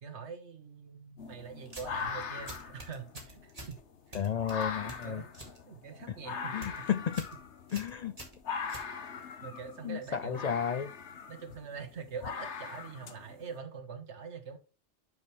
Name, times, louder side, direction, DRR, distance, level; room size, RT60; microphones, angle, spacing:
voice 1, 0.0-3.8 4.1-4.2 4.8-5.3 5.6-7.2 9.4-10.5 11.3-14.6, right 6 dB, 75° right, 1.5 m, -44 dB
sound 1, 1.2-13.6, left 6 dB, 85° left, 1.3 m, -41 dB
sound 2, 1.7-2.1 2.5-3.8 4.1-5.6 5.9-6.2 6.5-6.8 7.1-7.4 7.7-9.3, right 1 dB, 35° right, 2.3 m, -47 dB
voice 2, 4.1-5.2 6.1-6.2 6.5-7.3 7.7-8.2 9.8-10.9, left 8 dB, 60° left, 0.4 m, -33 dB
9.3 x 5.9 x 3.2 m
omnidirectional pair, 1.1 m